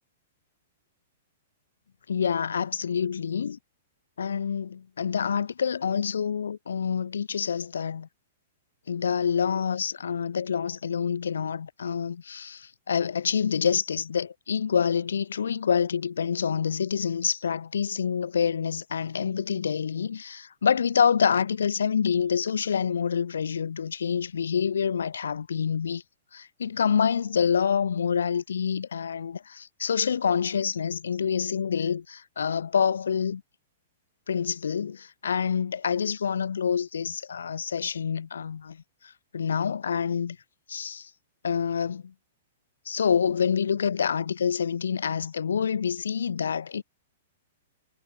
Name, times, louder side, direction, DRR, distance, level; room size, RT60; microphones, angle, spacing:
voice 1, 2.1-3.6 4.2-8.1 8.9-26.0 26.3-33.4 34.3-38.8 39.3-40.4 40.7-41.1 41.4-42.1 42.9-46.8, left 7 dB, 70° left, 0.3 m, -27 dB
figure-of-eight pair, 110°, 0 cm